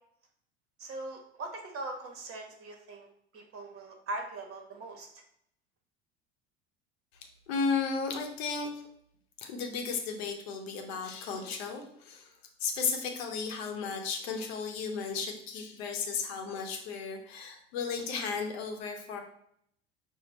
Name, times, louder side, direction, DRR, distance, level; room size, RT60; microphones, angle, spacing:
voice 1, 0.8-3.1 3.3-5.1, right 2 dB, 40° right, 3 dB, 1.0 m, -40 dB
voice 2, 7.5-8.7 9.4-12.3 12.6-19.2, left 5 dB, 65° left, 3 dB, 0.8 m, -34 dB
4.3 x 2.1 x 4.1 m, 0.70 s
hypercardioid pair, 75°, 33 cm